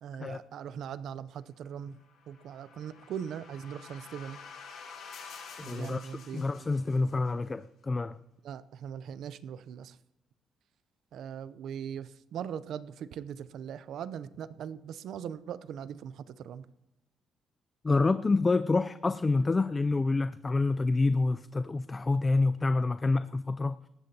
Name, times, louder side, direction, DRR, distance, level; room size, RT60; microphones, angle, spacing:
voice 1, 0.0-2.0 2.3-4.4 5.6-6.6 8.4-10.0 11.1-16.7, right 8 dB, 75° right, 0.6 m, -40 dB
sound 1, 2.0-7.3, left 5 dB, 75° left, 4.0 m, -49 dB
voice 2, 5.6-8.2 17.8-23.8, left 3 dB, 25° left, 0.4 m, -27 dB
19.0 x 14.5 x 2.8 m
cardioid pair, 90°, 0 cm